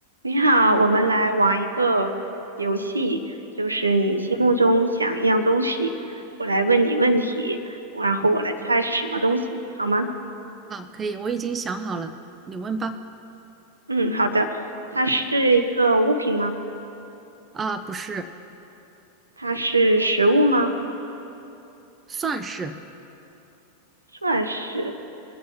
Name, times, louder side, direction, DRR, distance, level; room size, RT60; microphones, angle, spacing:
voice 1, 0.2-2.1 2.6-3.2 3.6-5.9 6.4-9.4 9.8-10.1 13.9-14.6 14.9-16.6 19.4-20.7 24.2-24.9, right 2 dB, 80° right, 7 dB, 0.8 m, -21 dB
voice 2, 10.7-12.1 12.5-13.0 17.5-18.3 22.1-22.7, right 4 dB, 20° right, 10 dB, 0.6 m, -29 dB
21.5 x 8.3 x 4.5 m, 2.9 s
figure-of-eight pair, 90°, 0 cm